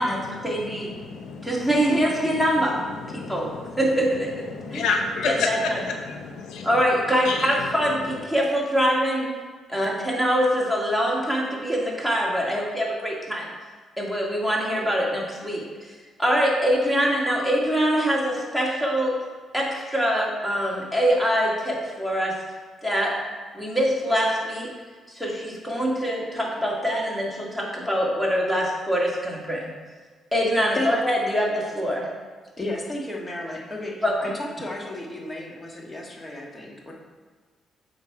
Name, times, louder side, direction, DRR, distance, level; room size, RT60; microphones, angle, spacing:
voice 1, 0.0-0.9 1.4-2.8 3.1-3.5 3.8-4.4 4.7-4.9 5.2-5.8 6.6-9.3 9.7-13.5 14.0-15.6 16.2-19.1 19.5-22.3 22.8-23.1 23.5-24.7 25.1-29.7 30.3-32.1 34.0-34.1, equal, 5° left, -3 dB, 1.9 m, -24 dB
voice 2, 1.0-1.6 3.1-3.8 4.5-6.7 7.3-7.5, left 4 dB, 85° left, 4 dB, 0.7 m, -29 dB
voice 3, 32.6-34.0 34.2-36.9, left 1 dB, 25° left, -1 dB, 1.5 m, -33 dB
7.2 x 5.2 x 4.7 m, 1.5 s
cardioid pair, 90°, 0 cm